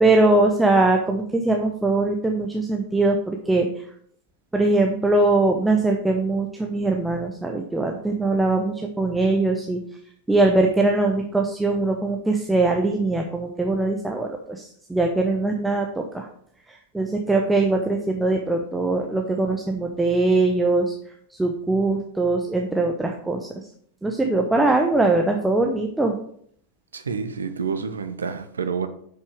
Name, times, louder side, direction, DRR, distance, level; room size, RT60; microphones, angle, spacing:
voice 1, 0.0-3.7 4.5-9.8 10.3-16.3 16.7-20.9 21.4-23.5 24.0-26.1, right 2 dB, 5° right, 0.9 m, -21 dB
voice 2, 26.9-28.9, right 5 dB, 70° right, 0.9 m, -28 dB
7.9 x 5.6 x 5.0 m
figure-of-eight pair, 90°, 0 cm